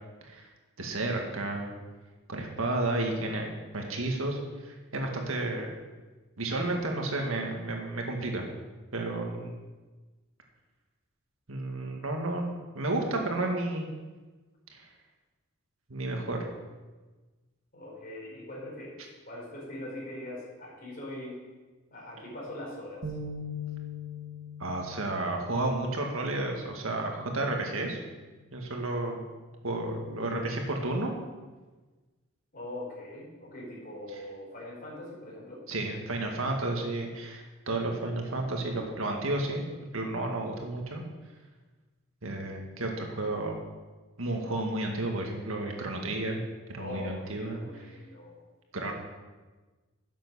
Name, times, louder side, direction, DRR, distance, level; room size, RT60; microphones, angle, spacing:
voice 1, 0.8-1.7 2.3-5.7 6.4-8.5 8.9-9.5 11.5-13.9 14.7-14.9 15.9-16.4 24.6-28.0 28.5-29.2 29.6-31.1 35.7-39.6 39.9-41.0 42.2-43.6 44.2-46.4 46.7-47.6 48.7-48.9, right 2 dB, 80° right, 1 dB, 1.9 m, -32 dB
voice 2, 17.7-19.0 19.3-21.4 21.9-23.2 32.5-35.6 46.8-48.4 48.8-48.9, left 1 dB, 45° left, -4 dB, 4.4 m, -42 dB
sound 1, 23.0-26.5, left 4 dB, 60° right, 1.6 m, -40 dB
11.0 x 7.5 x 6.2 m, 1.3 s
head